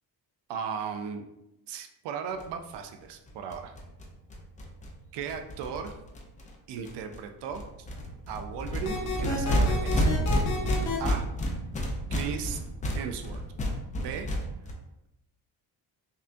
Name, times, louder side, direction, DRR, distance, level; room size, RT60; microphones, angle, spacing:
voice 1, 0.5-1.3 1.7-3.7 5.1-5.9 6.7-7.6 8.3-10.3 11.0-11.3 12.1-12.6 12.9-13.4 13.9-14.3, right 7 dB, 90° right, 5 dB, 0.5 m, -36 dB
sound 1, 2.4-2.5 2.7-2.8 3.0-3.1 3.3-6.5 6.8-7.2 7.5-14.7, equal, 20° left, 0.3 m, -30 dB
sound 2, 8.8-11.0, left 3 dB, 45° left, 0.7 m, -31 dB
5.4 x 2.3 x 2.5 m, 0.89 s
cardioid pair, 180°, 40 cm